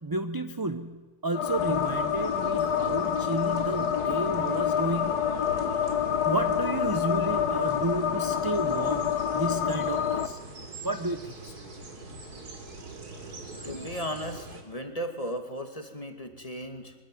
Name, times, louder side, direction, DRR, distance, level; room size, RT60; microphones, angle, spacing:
voice 1, 0.0-5.5 5.8-10.4 10.8-11.5 13.5-13.9, right 2 dB, 20° right, 9 dB, 0.7 m, -32 dB
sound 1, 1.3-10.3, left 8 dB, 85° left, 1.7 m, -27 dB
sound 2, 1.5-14.6, right 2 dB, 85° right, 3.8 m, -44 dB
voice 2, 13.6-16.9, equal, 20° left, 5 dB, 2.6 m, -36 dB
25.0 x 21.5 x 9.3 m, 1.2 s
omnidirectional pair, 1.6 m